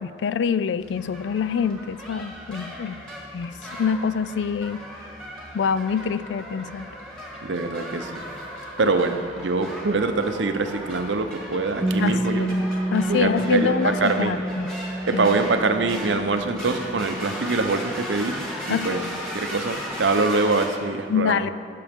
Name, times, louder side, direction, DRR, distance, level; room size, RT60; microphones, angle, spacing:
voice 1, 0.0-3.0 3.3-4.8 5.5-6.9 12.0-12.6 12.9-14.7 15.1-15.4 18.7-19.2 21.1-21.5, left 6 dB, 70° left, 15 dB, 0.3 m, -26 dB
sound 1, 0.8-20.7, equal, 5° left, 1.8 m, -37 dB
voice 2, 7.4-8.2 8.8-12.5 13.1-14.4 15.0-19.0 19.3-21.5, right 3 dB, 80° right, 7 dB, 0.7 m, -24 dB
Piano, 11.8-19.1, right 1 dB, 15° right, 0.3 m, -30 dB
16.0 x 6.8 x 3.6 m, 2.3 s
head